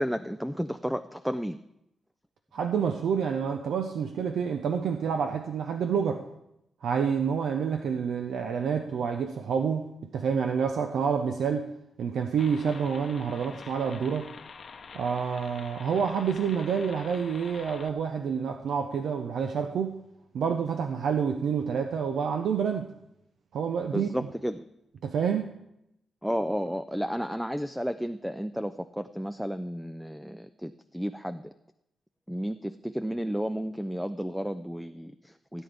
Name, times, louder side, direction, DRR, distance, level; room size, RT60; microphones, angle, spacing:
voice 1, 0.0-1.6 23.9-24.6 26.2-31.5 32.3-35.6, equal, ahead, 10 dB, 0.3 m, -32 dB
voice 2, 2.5-6.2 6.8-9.9 10.1-11.7 12.0-14.3 14.9-20.0 20.3-22.9 23.5-24.3 25.0-25.5, right 6 dB, 80° right, 5 dB, 0.7 m, -28 dB
sound 1, 12.4-17.9, left 5 dB, 45° left, 0.8 m, -46 dB
17.0 x 9.2 x 3.4 m, 0.81 s
cardioid pair, 125°, 0 cm